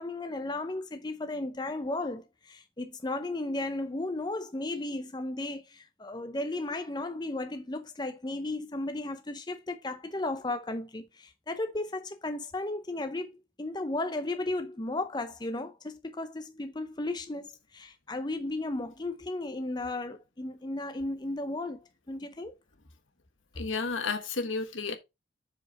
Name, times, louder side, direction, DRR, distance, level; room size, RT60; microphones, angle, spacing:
voice 1, 0.0-22.5 23.5-23.7, left 2 dB, 20° left, 0.7 m, -35 dB
voice 2, 23.6-24.9, left 4 dB, 80° left, 1.5 m, -32 dB
7.4 x 4.9 x 4.2 m
head